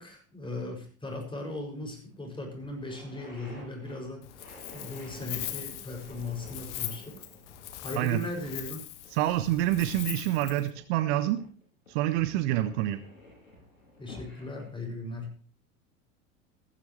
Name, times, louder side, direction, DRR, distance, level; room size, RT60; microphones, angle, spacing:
voice 1, 0.0-4.2 4.7-7.2 7.8-8.8 14.0-15.3, left 2 dB, 10° left, 2 dB, 6.8 m, -38 dB
sound 1, 2.1-2.2 2.5-11.1 11.4-14.6, left 1 dB, 80° left, 7.7 m, -51 dB
Wind, 4.2-10.7, left 12 dB, 60° left, 1.9 m, -41 dB
voice 2, 9.1-11.4 11.9-13.0, right 14 dB, 50° right, 11 dB, 1.3 m, -27 dB
17.0 x 15.0 x 3.3 m, 0.41 s
figure-of-eight pair, 85°, 40 cm